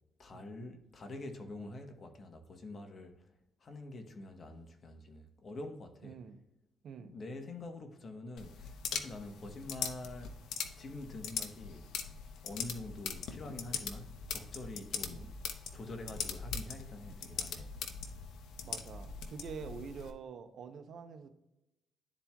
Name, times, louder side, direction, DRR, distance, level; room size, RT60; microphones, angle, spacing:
voice 1, 0.2-3.2 3.6-6.2 7.0-10.3 10.8-11.9 12.4-15.3 15.7-17.8, left 2 dB, 45° left, 1.1 m, -46 dB
voice 2, 6.0-6.4 6.8-7.1 15.1-15.3 18.6-21.3, right 6 dB, 65° right, 0.7 m, -46 dB
sound 1, 8.4-20.1, left 6 dB, 80° left, 0.7 m, -41 dB
11.5 x 4.3 x 2.3 m
cardioid pair, 90°, 0 cm